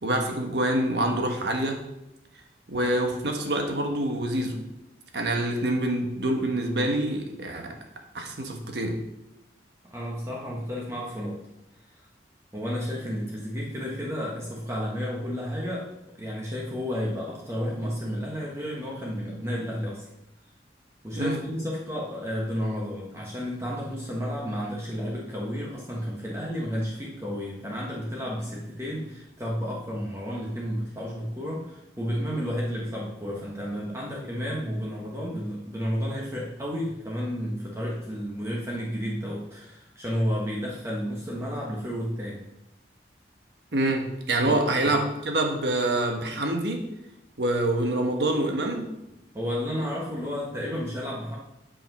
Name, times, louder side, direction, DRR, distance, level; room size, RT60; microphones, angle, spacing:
voice 1, 0.0-1.8 2.7-4.6 5.1-7.7 8.1-9.0 21.2-21.4 43.7-46.8 47.4-48.8, right 1 dB, 65° right, 3 dB, 1.4 m, -26 dB
voice 2, 9.9-11.4 11.9-12.0 12.5-15.9 16.2-20.0 21.0-42.4 44.5-45.0 49.3-51.4, equal, 15° right, -4 dB, 1.3 m, -32 dB
8.8 x 5.7 x 5.5 m, 0.90 s
head